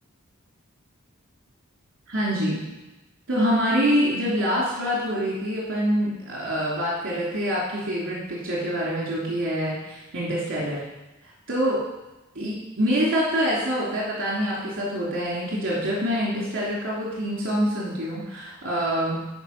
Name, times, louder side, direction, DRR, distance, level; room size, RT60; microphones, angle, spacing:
voice 1, 2.1-2.6 3.3-10.9 11.5-11.9 12.3-19.2, equal, 50° right, -5 dB, 3.1 m, -25 dB
13.0 x 4.8 x 5.9 m, 1.0 s
head